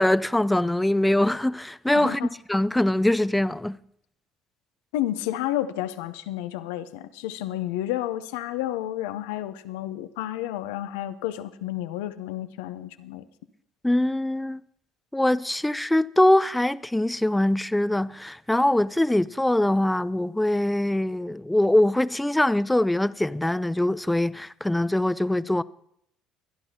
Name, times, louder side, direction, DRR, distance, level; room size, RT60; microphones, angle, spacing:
voice 1, 0.0-2.2 2.5-3.8 13.8-14.6 15.1-25.6, left 1 dB, 10° left, 0.4 m, -23 dB
voice 2, 1.9-2.3 4.9-13.3, left 13 dB, 75° left, 0.7 m, -31 dB
24.0 x 10.5 x 2.9 m
hypercardioid pair, 60°, 0 cm